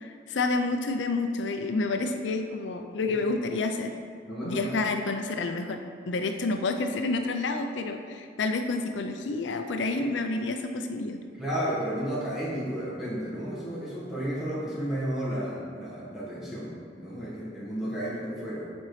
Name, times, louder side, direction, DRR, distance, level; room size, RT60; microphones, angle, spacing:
voice 1, 0.0-3.9 4.4-11.2, left 3 dB, 80° left, 6 dB, 0.5 m, -29 dB
voice 2, 4.3-4.7 11.4-18.7, equal, ahead, -9 dB, 1.3 m, -32 dB
7.5 x 4.4 x 3.2 m, 2.2 s
head